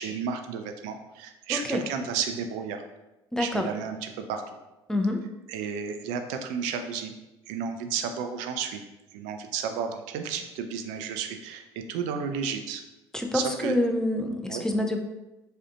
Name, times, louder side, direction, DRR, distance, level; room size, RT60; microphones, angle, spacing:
voice 1, 0.0-2.8 3.4-4.4 5.5-7.1 7.5-8.8 9.1-12.8 13.3-13.7 14.5-14.6, right 6 dB, 60° right, 6 dB, 0.4 m, -32 dB
voice 2, 1.5-1.8 3.3-3.7 4.9-5.2 13.1-15.0, left 1 dB, 5° left, 3 dB, 0.4 m, -27 dB
4.3 x 2.4 x 2.5 m, 1.0 s
figure-of-eight pair, 55°, 14 cm